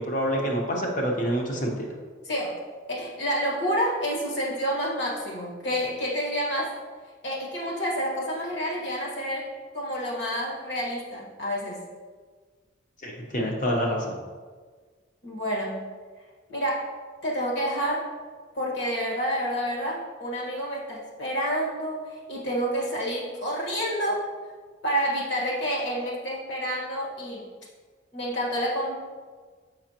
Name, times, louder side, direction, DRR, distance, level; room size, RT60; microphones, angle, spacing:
voice 1, 0.0-1.9 13.0-14.2, equal, 40° left, 0 dB, 0.9 m, -27 dB
voice 2, 2.2-2.6 2.9-6.7 7.2-9.5 9.7-11.8 15.2-15.8 16.5-16.9 17.2-18.0 18.5-24.2 24.8-27.4 28.1-29.0, equal, 55° left, -4 dB, 1.5 m, -29 dB
6.3 x 5.5 x 2.9 m, 1.5 s
head